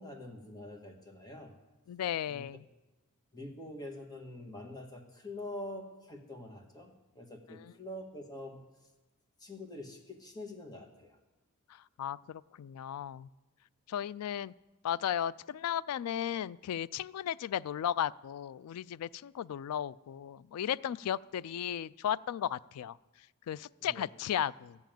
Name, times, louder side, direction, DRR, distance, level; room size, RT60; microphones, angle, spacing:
voice 1, 0.0-1.6 2.3-2.5 3.3-8.6 9.4-11.2 23.8-24.0, left 1 dB, 20° left, 3 dB, 1.6 m, -45 dB
voice 2, 1.9-2.6 12.0-13.3 13.9-14.5 14.8-23.0 23.5-24.8, left 9 dB, 85° left, 20 dB, 0.3 m, -35 dB
14.0 x 7.2 x 9.1 m, 1.1 s
head